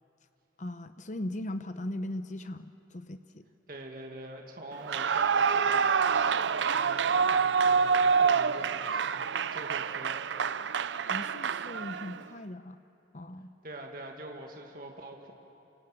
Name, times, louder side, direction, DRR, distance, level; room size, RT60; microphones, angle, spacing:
voice 1, 0.6-3.4 11.0-12.8 13.1-13.5, left 1 dB, 40° left, 10 dB, 0.8 m, -39 dB
voice 2, 3.7-10.2 13.6-15.3, right 1 dB, 50° right, 1 dB, 2.2 m, -44 dB
Clapping / Cheering / Applause, 4.8-12.2, right 6 dB, 80° right, 0.5 m, -27 dB
28.5 x 25.0 x 7.8 m, 2.8 s
head